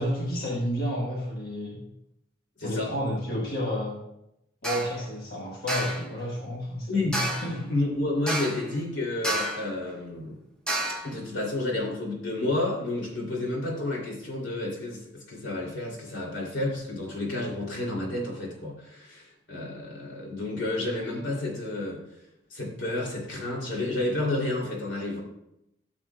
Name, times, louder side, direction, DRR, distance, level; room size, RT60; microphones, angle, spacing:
voice 1, 0.0-1.8 2.6-4.0 4.6-7.7, equal, 50° left, -4 dB, 1.5 m, -31 dB
voice 2, 2.6-2.9 6.9-7.2 7.7-10.4 11.1-22.0 22.5-25.2, left 2 dB, 85° left, -2 dB, 2.8 m, -30 dB
sound 1, 4.6-5.0 5.7-6.1 7.1-7.6 8.3-8.7 9.2-9.7 10.7-11.1, right 1 dB, 5° left, 1.1 m, -30 dB
13.0 x 7.2 x 2.3 m, 0.83 s
head